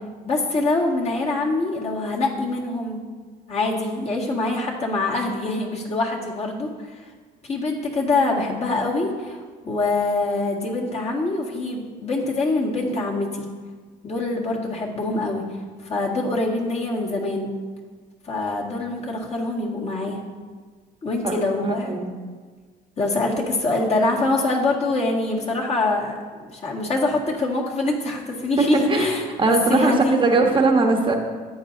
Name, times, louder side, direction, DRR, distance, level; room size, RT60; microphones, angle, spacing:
voice 1, 0.3-3.0 3.5-7.0 7.4-13.5 14.0-15.4 15.8-17.5 18.3-20.2 21.0-22.0 23.0-30.2, left 2 dB, 40° left, -2 dB, 1.8 m, -24 dB
voice 2, 21.6-22.1 28.6-29.1 29.4-31.1, right 3 dB, 30° right, 3 dB, 1.0 m, -20 dB
13.5 x 8.8 x 2.7 m, 1.5 s
cardioid pair, 110°, 17 cm